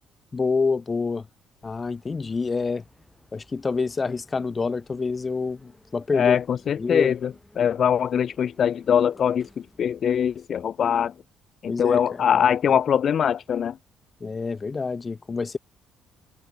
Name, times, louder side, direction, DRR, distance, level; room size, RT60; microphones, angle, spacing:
voice 1, 0.3-1.3 1.6-2.8 3.3-6.4 6.8-7.1 11.7-12.2 12.7-12.8 14.2-15.6, left 4 dB, 25° left, 1.4 m, -27 dB
sound 1, 1.6-10.5, left 1 dB, 5° left, 7.1 m, -57 dB
voice 2, 6.1-7.3 7.6-9.5 9.8-11.1 11.6-13.8, left 8 dB, 50° left, 0.4 m, -22 dB
cardioid pair, 115°, 0 cm